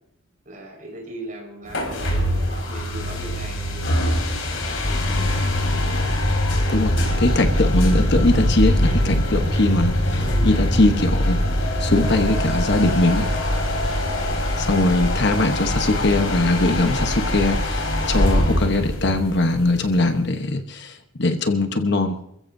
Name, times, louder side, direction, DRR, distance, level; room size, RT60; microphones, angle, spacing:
voice 1, 0.4-5.1 7.3-7.9 14.2-14.5, right 1 dB, 35° right, 1 dB, 5.0 m, -39 dB
sound 1, 1.7-20.2, left 1 dB, 70° left, 3.9 m, -22 dB
voice 2, 6.7-11.4 11.8-13.3 14.6-22.2, left 2 dB, 50° left, 6 dB, 1.1 m, -21 dB
28.0 x 15.0 x 2.7 m, 0.77 s
head